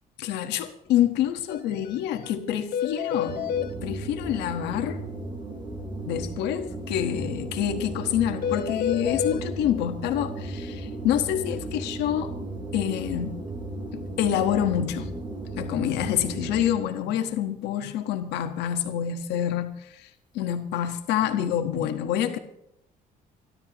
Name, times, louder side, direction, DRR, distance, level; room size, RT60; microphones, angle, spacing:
voice 1, 0.2-3.4 3.8-5.0 6.0-12.4 12.7-13.4 13.9-15.1 15.5-20.1 20.3-22.4, left 10 dB, 85° left, 6 dB, 1.4 m, -27 dB
sound 1, 1.5-1.6 1.9-2.0 2.2-2.3 2.7-3.7 8.4-9.4, left 9 dB, 60° left, 1.0 m, -28 dB
sound 2, 3.3-16.9, right 2 dB, 25° right, 4.5 m, -35 dB
28.5 x 12.0 x 3.0 m, 0.78 s
cardioid pair, 110°, 17 cm